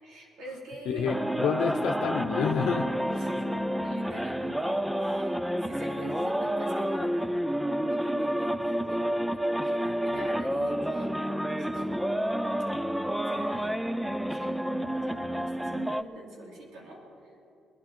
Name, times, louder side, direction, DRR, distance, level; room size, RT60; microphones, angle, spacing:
voice 1, 0.0-1.2 3.1-3.5 3.8-7.5 7.8-12.3 13.3-17.4, right 1 dB, 80° right, -3 dB, 3.8 m, -45 dB
voice 2, 0.9-3.2, left 6 dB, 80° left, 4 dB, 0.7 m, -29 dB
sound 1, 1.1-16.0, equal, 5° right, 0.4 m, -29 dB
21.5 x 13.5 x 4.5 m, 3.0 s
cardioid pair, 90°, 0 cm